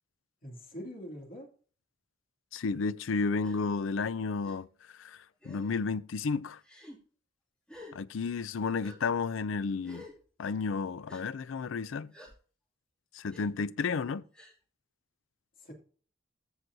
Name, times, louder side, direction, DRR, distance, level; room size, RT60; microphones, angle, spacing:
voice 1, 0.4-1.5 15.6-15.7, equal, 45° left, 2.5 m, -43 dB
voice 2, 2.5-4.7 5.0-6.6 7.9-10.1 10.4-12.1 13.1-14.2, left 4 dB, 80° left, 0.4 m, -32 dB
Gasp, 3.4-3.6 4.4-4.6 5.4-5.8 6.6-7.0 7.7-8.0 8.8-9.0 9.8-10.2 11.1-11.2 12.1-12.3 13.3-13.4 14.3-14.6, left 1 dB, 5° left, 2.4 m, -50 dB
14.5 x 6.1 x 2.7 m
head